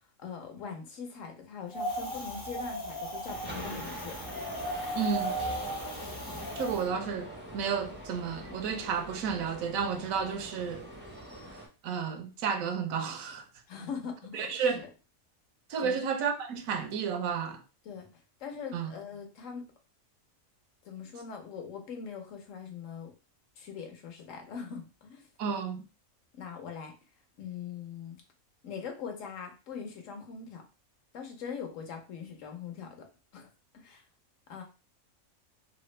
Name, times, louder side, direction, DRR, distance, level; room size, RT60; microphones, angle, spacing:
voice 1, 0.2-4.2 13.7-14.8 15.8-16.0 17.8-18.1 18.4-19.6 20.8-23.1 23.6-25.2 26.3-26.9 27.4-28.2 28.6-30.6 31.1-33.1 33.3-33.5 33.7-34.0 34.5-34.6, left 6 dB, 70° left, 1.1 m, -41 dB
Wind, 1.7-6.8, right 1 dB, 30° left, 0.7 m, -37 dB
sound 1, 3.2-11.7, right 1 dB, 15° right, 0.3 m, -42 dB
voice 2, 4.9-5.4 6.6-10.9 11.8-13.4 14.3-14.8 15.7-17.6 18.7-18.9 25.4-25.8, right 6 dB, 85° right, 1.0 m, -32 dB
3.3 x 2.0 x 3.1 m
omnidirectional pair, 1.4 m